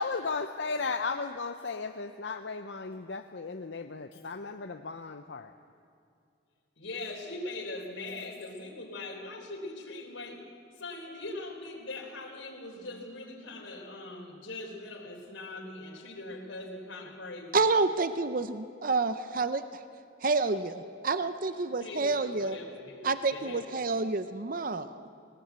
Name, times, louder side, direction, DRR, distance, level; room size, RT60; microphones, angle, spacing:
voice 1, 0.0-5.5, left 4 dB, 65° left, 7 dB, 0.7 m, -35 dB
voice 2, 6.8-10.4 10.8-17.6 21.8-23.7, left 2 dB, 85° left, 0 dB, 3.9 m, -41 dB
voice 3, 17.5-19.6 20.2-22.6 23.0-25.0, right 3 dB, 45° right, 11 dB, 0.6 m, -28 dB
19.5 x 19.0 x 8.2 m, 2.5 s
head